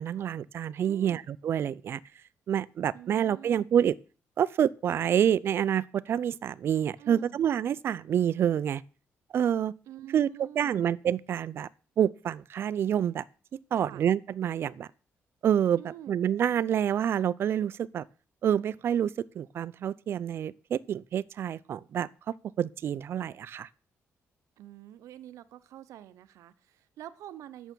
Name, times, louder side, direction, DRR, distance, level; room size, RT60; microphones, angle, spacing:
voice 1, 0.0-2.0 2.5-4.0 4.4-8.8 9.3-9.7 10.1-11.7 12.0-13.2 13.5-14.9 15.4-15.8 16.1-18.1 18.4-22.1 22.6-23.7, right 9 dB, 50° right, 0.4 m, -27 dB
voice 2, 0.9-1.2 2.9-3.7 7.0-7.4 9.9-10.8 13.7-14.0 15.8-16.2 24.6-27.7, right 12 dB, 85° right, 0.7 m, -46 dB
9.1 x 7.0 x 6.1 m
cardioid pair, 145°, 5 cm